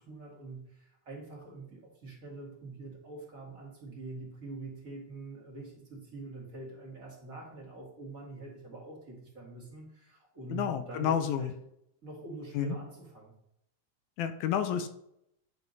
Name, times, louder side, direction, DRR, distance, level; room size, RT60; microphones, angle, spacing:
voice 1, 0.0-11.5 12.0-13.3, right 2 dB, 30° right, -4 dB, 2.1 m, -45 dB
voice 2, 10.5-11.5 12.5-12.8 14.2-14.9, left 8 dB, 75° left, 9 dB, 1.9 m, -30 dB
10.5 x 3.5 x 4.0 m, 0.76 s
omnidirectional pair, 3.6 m